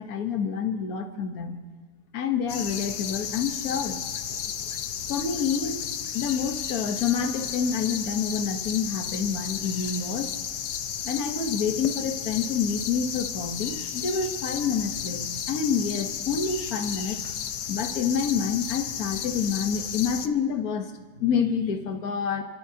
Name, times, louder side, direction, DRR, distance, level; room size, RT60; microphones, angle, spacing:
voice 1, 0.0-1.6 2.1-4.1 5.1-5.8 6.1-10.3 11.0-17.2 17.7-20.9 21.2-22.4, left 6 dB, 65° left, 5 dB, 1.6 m, -28 dB
sound 1, 2.5-20.3, left 8 dB, 80° left, 1.4 m, -33 dB
30.0 x 17.0 x 2.8 m, 1.5 s
omnidirectional pair, 1.7 m